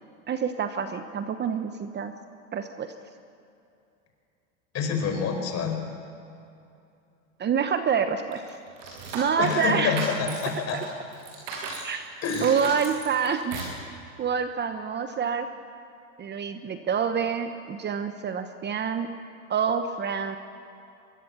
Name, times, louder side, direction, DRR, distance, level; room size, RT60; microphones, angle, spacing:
voice 1, 0.3-2.1 2.5-2.9 7.4-8.6 9.1-10.0 10.7-10.8 11.8-15.5 16.2-19.1 19.5-20.4, right 6 dB, 25° right, 8 dB, 1.1 m, -27 dB
voice 2, 4.7-5.8 9.4-10.8 12.2-12.5, left 6 dB, 40° left, 4 dB, 5.1 m, -27 dB
sound 1, 8.3-11.9 12.2-13.8, right 4 dB, 60° right, 7.5 m, -36 dB
24.0 x 22.0 x 7.2 m, 2.6 s
hypercardioid pair, 110°, 41 cm